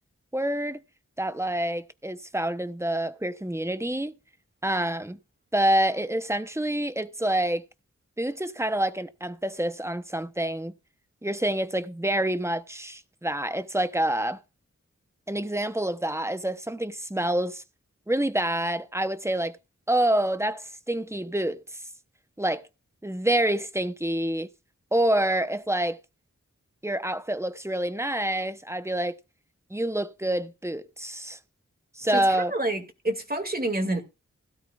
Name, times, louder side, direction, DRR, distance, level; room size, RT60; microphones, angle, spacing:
voice 1, 0.3-0.8 1.2-4.1 4.6-5.2 5.5-7.6 8.2-10.7 11.2-14.4 15.3-17.6 18.1-19.6 19.9-21.6 22.4-22.7 23.0-24.5 24.9-26.0 26.8-29.2 29.7-31.4 32.0-32.5, right 1 dB, 10° right, 0.9 m, -27 dB
voice 2, 32.1-34.0, right 1 dB, 30° right, 2.4 m, -28 dB
16.5 x 12.5 x 2.5 m
wide cardioid pair, 40°, 30 cm